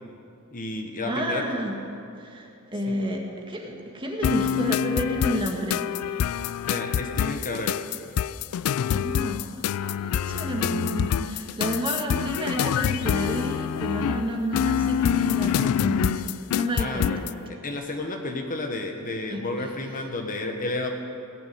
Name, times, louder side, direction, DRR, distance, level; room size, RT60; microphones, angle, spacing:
voice 1, 0.5-1.4 2.9-3.0 6.7-7.8 16.8-20.9, left 2 dB, 40° left, 3 dB, 1.3 m, -31 dB
voice 2, 1.1-1.7 2.2-6.4 8.9-17.2 19.3-19.4, equal, 25° right, 1 dB, 1.7 m, -30 dB
sound 1, 4.2-17.4, left 9 dB, 75° left, 0.3 m, -26 dB
18.0 x 6.9 x 9.2 m, 2.5 s
head